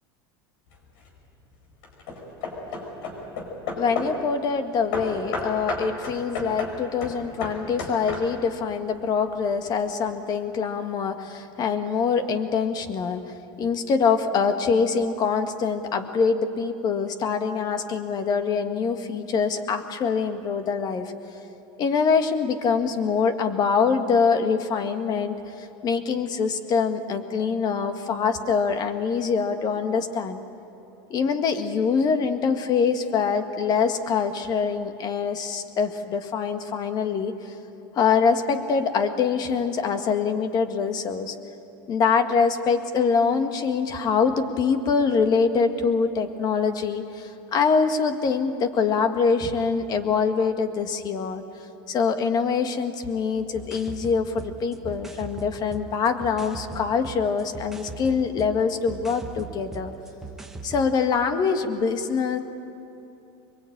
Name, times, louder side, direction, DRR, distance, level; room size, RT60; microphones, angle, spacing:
Hammer / Wood, 0.7-1.2 1.8-4.3 4.9-8.6, left 3 dB, 70° left, 5.5 m, -33 dB
voice 1, 3.8-21.1 21.8-30.4 31.1-37.3 37.9-41.3 41.9-51.4 51.9-59.9 60.6-62.4, left 5 dB, 35° left, 7 dB, 1.7 m, -24 dB
sound 1, 53.5-60.9, right 4 dB, 5° right, 1.4 m, -40 dB
23.5 x 22.5 x 8.8 m, 2.8 s
supercardioid pair, 140°, 12 cm